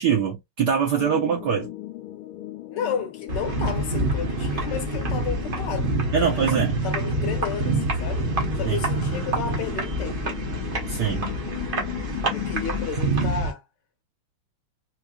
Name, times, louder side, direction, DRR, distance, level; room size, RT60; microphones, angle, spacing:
voice 1, 0.0-1.7 6.1-6.8 8.7-8.8 10.9-11.3, right 7 dB, 60° right, 1.3 m, -23 dB
sound 1, 1.0-12.9, left 16 dB, 80° left, 1.5 m, -36 dB
voice 2, 2.7-6.5 6.8-8.3 8.6-10.2 12.3-13.6, left 6 dB, 60° left, 1.5 m, -32 dB
sound 2, 3.3-13.5, right 2 dB, 40° right, 0.7 m, -27 dB
4.4 x 2.7 x 2.4 m
omnidirectional pair, 2.4 m